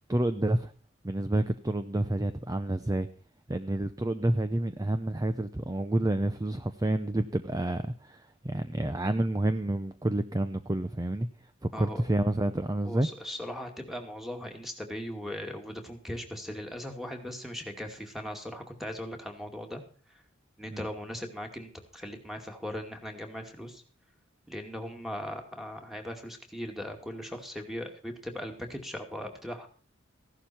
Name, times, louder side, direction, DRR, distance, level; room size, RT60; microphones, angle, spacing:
voice 1, 0.1-0.7 1.0-3.1 3.5-11.3 11.6-13.1 20.7-20.9, right 1 dB, 20° right, 11 dB, 0.6 m, -29 dB
voice 2, 12.8-19.8 20.1-20.2 20.6-23.8 24.5-29.7, equal, ahead, 4 dB, 2.3 m, -39 dB
15.5 x 11.5 x 4.4 m, 0.40 s
head